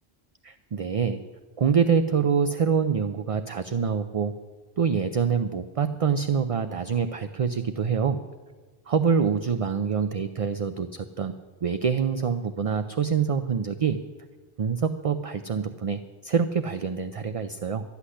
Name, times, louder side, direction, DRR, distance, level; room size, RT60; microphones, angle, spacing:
voice 1, 0.4-1.2 1.6-4.3 4.8-8.2 8.9-11.3 11.6-14.0 14.6-17.8, right 6 dB, 45° right, 10 dB, 0.5 m, -25 dB
12.5 x 8.2 x 9.9 m, 1.4 s
omnidirectional pair, 1.0 m